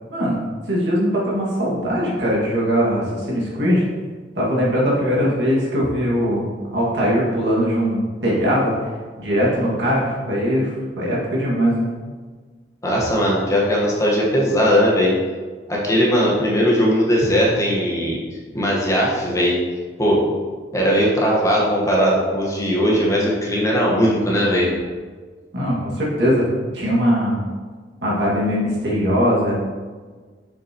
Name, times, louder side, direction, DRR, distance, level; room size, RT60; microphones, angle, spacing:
voice 1, 0.1-0.4 0.7-3.8 4.3-6.4 6.7-8.7 9.2-11.9 25.5-26.4 26.7-27.4 28.0-29.6, equal, 75° right, -5 dB, 2.0 m, -20 dB
voice 2, 12.8-15.1 15.7-18.2 18.5-19.6 20.0-20.3 20.7-24.7, equal, 20° left, -4 dB, 1.3 m, -18 dB
6.9 x 6.1 x 3.0 m, 1.5 s
head